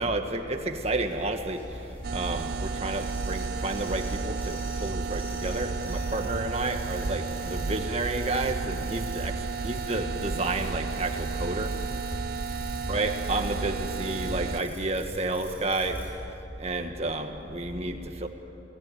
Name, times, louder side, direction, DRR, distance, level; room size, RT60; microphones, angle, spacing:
voice 1, 0.0-1.6 2.1-11.7 12.9-16.0 16.6-18.3, right 2 dB, 35° right, 5 dB, 1.5 m, -31 dB
sound 1, 0.7-16.1, equal, 10° left, 7.7 m, -41 dB
sound 2, 2.0-14.6, right 5 dB, 55° right, 0.5 m, -33 dB
28.5 x 18.5 x 9.3 m, 2.9 s
head